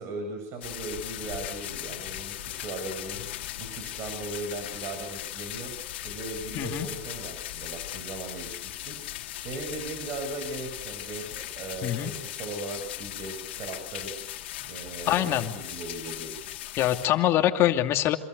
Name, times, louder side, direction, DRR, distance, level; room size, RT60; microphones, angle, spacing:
voice 1, 0.0-3.2 3.6-5.7 6.0-14.1 14.6-16.4, right 3 dB, 50° right, 5 dB, 7.7 m, -38 dB
sound 1, 0.6-17.1, left 14 dB, 90° left, 2.8 m, -38 dB
voice 2, 6.5-6.9 11.8-12.1 15.1-15.5 16.8-18.2, left 13 dB, 45° left, 6 dB, 2.7 m, -24 dB
27.5 x 27.0 x 6.8 m, 0.80 s
supercardioid pair, 120°, 6 cm